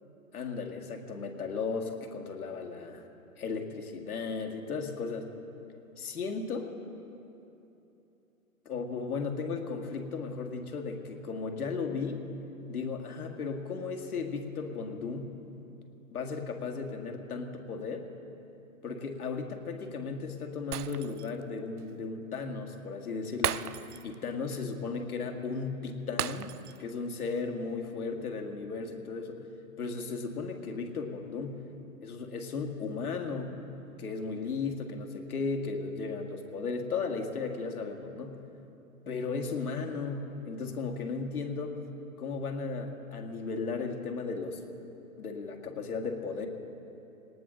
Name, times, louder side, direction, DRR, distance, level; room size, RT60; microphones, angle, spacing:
voice 1, 0.3-3.1 3.4-5.3 6.0-6.7 8.7-12.3 12.7-15.3 16.1-18.1 18.8-23.6 24.0-29.5 29.8-31.6 32.0-33.5 34.0-38.4 39.1-41.8 42.2-44.6 45.2-46.5, left 4 dB, 80° left, 4 dB, 2.1 m, -35 dB
Shatter, 20.7-21.4 21.8-21.9 23.4-24.2 24.5-24.7 26.2-26.9 27.2-27.4, right 10 dB, 90° right, 0.6 m, -35 dB
19.5 x 18.5 x 3.9 m, 2.9 s
hypercardioid pair, 155°, 44 cm